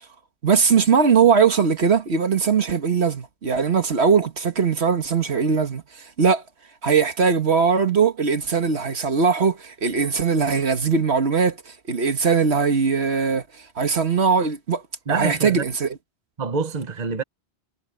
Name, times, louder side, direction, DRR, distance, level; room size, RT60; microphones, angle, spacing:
voice 1, 0.4-6.4 6.8-13.4 13.8-14.8 15.1-15.9, right 5 dB, 70° right, 1.8 m, -20 dB
voice 2, 15.1-15.6 16.4-17.2, right 5 dB, 40° right, 1.3 m, -26 dB
omnidirectional pair, 1.1 m